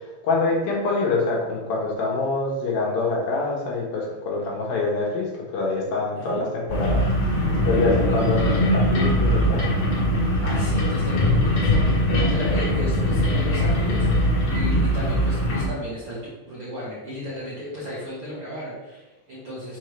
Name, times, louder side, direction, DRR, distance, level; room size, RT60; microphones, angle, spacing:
voice 1, 0.2-7.0 7.7-9.6, left 3 dB, 75° left, -3 dB, 2.9 m, -25 dB
voice 2, 6.1-6.4 10.4-16.2 16.5-19.8, equal, 55° right, -8 dB, 1.6 m, -34 dB
sound 1, 6.7-15.7, left 1 dB, 50° left, 2.0 m, -21 dB
6.7 x 5.4 x 3.3 m, 1.1 s
omnidirectional pair, 4.4 m